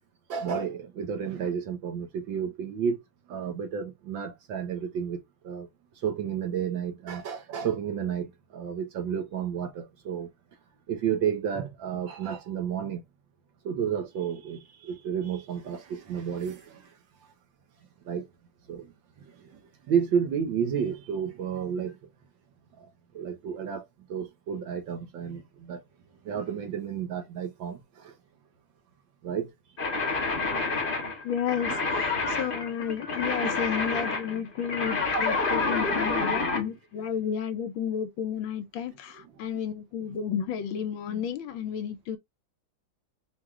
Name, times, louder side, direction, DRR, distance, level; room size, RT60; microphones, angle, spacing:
voice 1, 0.3-3.0 3.3-5.7 6.0-10.3 10.9-13.0 13.6-16.9 18.0-18.3 18.7-18.9 19.3-19.6 19.9-22.0 22.8-22.9 23.1-25.8 26.2-28.1 29.2-29.5 33.4-33.5 35.6-35.8 40.1-40.2, right 7 dB, 65° right, 1.7 m, -31 dB
sound 1, 29.8-36.7, left 3 dB, 30° left, 1.2 m, -28 dB
voice 2, 31.2-42.2, left 8 dB, 75° left, 1.4 m, -32 dB
4.8 x 2.8 x 3.6 m
omnidirectional pair, 2.4 m